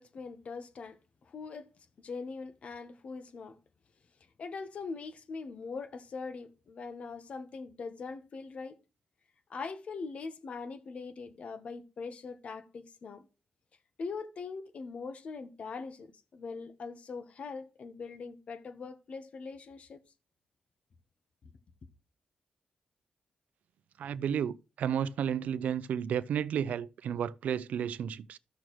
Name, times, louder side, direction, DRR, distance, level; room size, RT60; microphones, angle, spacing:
voice 1, 0.0-1.7 2.0-3.6 4.4-8.8 9.5-13.3 14.0-20.0, left 4 dB, 60° left, 1.0 m, -42 dB
voice 2, 24.0-28.4, right 8 dB, 85° right, 0.5 m, -32 dB
14.0 x 6.3 x 3.1 m
cardioid pair, 100°, 2 cm